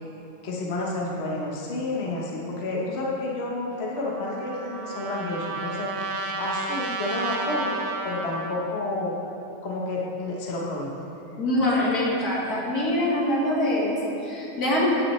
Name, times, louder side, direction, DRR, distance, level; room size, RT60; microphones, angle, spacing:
voice 1, 0.4-5.9 6.4-9.2 9.6-11.0, left 2 dB, 45° left, -3 dB, 1.3 m, -30 dB
Trumpet, 3.9-8.6, right 3 dB, 70° right, 1.3 m, -32 dB
voice 2, 11.4-14.9, left 1 dB, 80° left, -5 dB, 2.4 m, -24 dB
14.0 x 8.5 x 3.2 m, 2.8 s
omnidirectional pair, 1.6 m